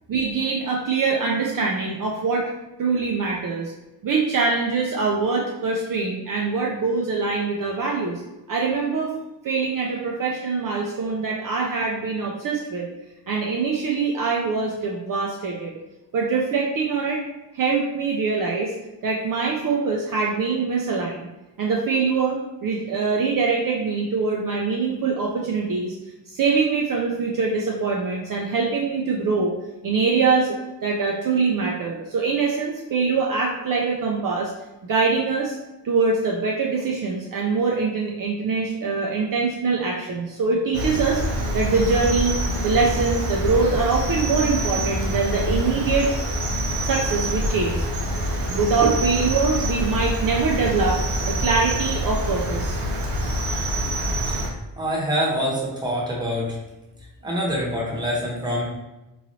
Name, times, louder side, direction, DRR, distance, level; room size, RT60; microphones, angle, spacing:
voice 1, 0.1-2.5 2.8-3.7 4.0-8.2 8.5-9.1 9.4-12.9 13.3-15.7 16.1-17.2 17.5-18.7 19.0-21.3 21.6-26.0 26.3-29.5 29.8-34.5 34.9-35.6 35.8-41.2 41.5-42.4 42.6-46.1 46.8-47.9 48.5-52.8, right 4 dB, 55° right, -1 dB, 0.5 m, -23 dB
Cricket, 40.7-54.5, equal, 80° right, 0.8 m, -25 dB
voice 2, 54.8-56.6 57.2-58.7, equal, 10° right, -5 dB, 0.9 m, -25 dB
3.9 x 3.1 x 2.7 m, 1.0 s
wide cardioid pair, 160°, 42 cm